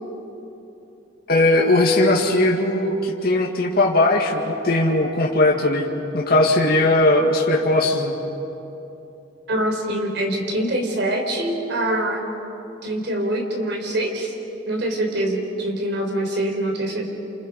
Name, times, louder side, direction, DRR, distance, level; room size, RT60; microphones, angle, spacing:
voice 1, 1.3-5.9 6.1-8.1, left 2 dB, 55° left, -1 dB, 2.2 m, -18 dB
voice 2, 9.5-12.2 12.8-14.3 14.7-17.1, right 1 dB, 60° right, 1 dB, 4.3 m, -24 dB
28.5 x 28.0 x 5.3 m, 2.9 s
head